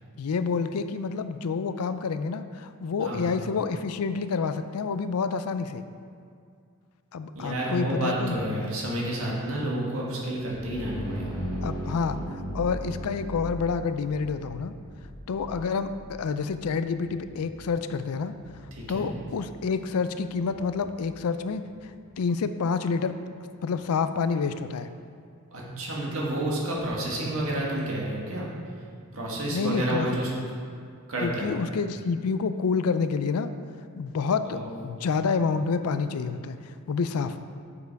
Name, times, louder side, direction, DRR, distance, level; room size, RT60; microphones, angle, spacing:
voice 1, 0.2-5.8 7.1-8.7 11.6-14.7 15.3-18.4 18.9-21.9 22.2-23.2 23.6-24.9 29.5-30.1 31.2-33.5 34.0-37.4, left 5 dB, 85° left, 11 dB, 0.4 m, -28 dB
voice 2, 7.3-11.4 18.7-19.1 25.5-28.5 29.1-30.3 31.1-31.5 34.4-34.7, right 1 dB, 65° right, -4 dB, 1.8 m, -30 dB
sound 1, 10.4-21.9, equal, 15° left, 1.0 m, -39 dB
7.2 x 6.7 x 4.7 m, 2.3 s
head